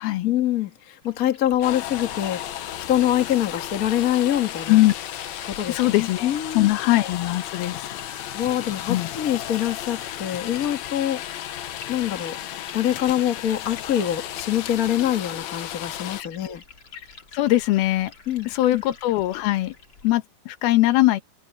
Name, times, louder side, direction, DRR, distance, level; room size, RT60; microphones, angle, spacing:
voice 1, 0.2-2.5 2.9-4.8 5.4-6.7 8.3-11.2 11.9-12.4 12.7-16.6 18.3-18.8, left 11 dB, 50° left, 1.0 m, -25 dB
Liquid, 1.0-20.1, left 4 dB, 35° left, 2.8 m, -47 dB
sound 1, 1.6-16.2, left 12 dB, 70° left, 1.8 m, -34 dB
voice 2, 5.7-7.9 8.9-9.1 16.2-16.3 17.3-18.1 18.5-19.7 20.0-21.2, left 17 dB, 85° left, 3.0 m, -21 dB
omnidirectional pair, 4.3 m